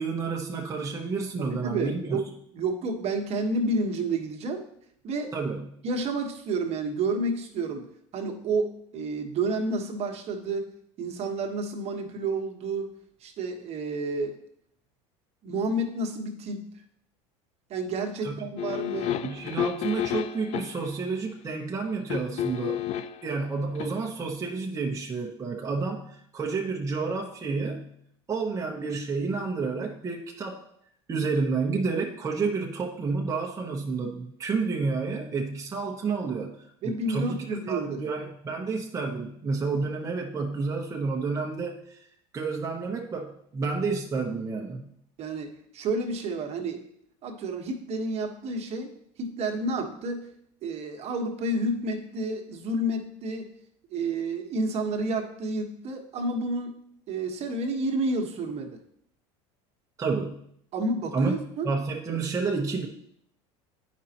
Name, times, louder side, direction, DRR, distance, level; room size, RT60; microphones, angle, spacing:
voice 1, 0.0-2.3 5.3-5.7 18.2-18.5 19.2-22.8 23.2-28.0 28.3-30.7 31.1-42.1 42.3-44.9 60.0-60.5 61.1-61.3 61.6-62.9, right 4 dB, 20° right, 0 dB, 0.9 m, -30 dB
voice 2, 1.4-4.6 5.0-5.4 5.8-7.9 8.1-10.7 11.0-12.9 13.2-14.4 15.4-16.7 17.7-19.2 36.8-38.0 45.2-46.8 47.2-48.9 49.2-50.3 50.6-53.5 53.9-56.7 57.1-58.8 60.7-61.7, right 2 dB, 45° right, 3 dB, 1.2 m, -30 dB
sound 1, 18.6-20.9 22.1-23.3 23.7-23.9, left 10 dB, 45° left, 0.4 m, -31 dB
9.2 x 5.2 x 2.9 m, 0.69 s
supercardioid pair, 105°, 15 cm